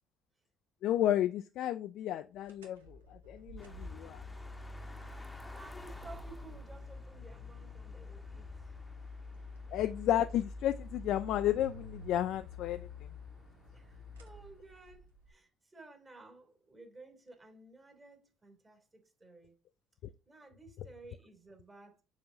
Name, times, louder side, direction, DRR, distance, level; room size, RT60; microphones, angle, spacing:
voice 1, 0.8-4.2 9.7-12.9, left 12 dB, 65° left, 0.4 m, -32 dB
sound 1, 2.4-15.3, left 3 dB, 85° right, 1.3 m, -48 dB
sound 2, 3.6-15.0, equal, 10° left, 1.1 m, -53 dB
voice 2, 5.0-8.8 9.3-9.4 13.7-19.5 20.2-22.0, right 2 dB, 25° right, 3.0 m, -55 dB
6.9 x 5.2 x 2.7 m
hypercardioid pair, 55°, 0 cm